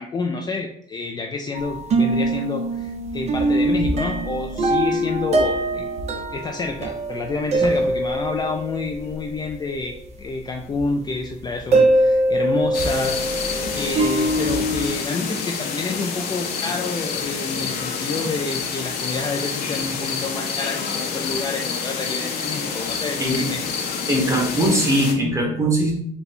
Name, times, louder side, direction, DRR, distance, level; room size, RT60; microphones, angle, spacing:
voice 1, 0.0-5.9 6.3-13.2 13.7-23.6, left 3 dB, 25° left, 2 dB, 0.4 m, -28 dB
sound 1, 1.5-9.1 9.5-9.6 10.8-10.9 11.7-14.9, right 1 dB, 40° right, 0.7 m, -22 dB
sound 2, 12.7-25.1, left 6 dB, 70° left, 0.8 m, -28 dB
voice 2, 24.1-25.9, right 1 dB, 15° right, -1 dB, 1.2 m, -20 dB
4.0 x 2.2 x 4.2 m, 0.68 s
cardioid pair, 110°, 17 cm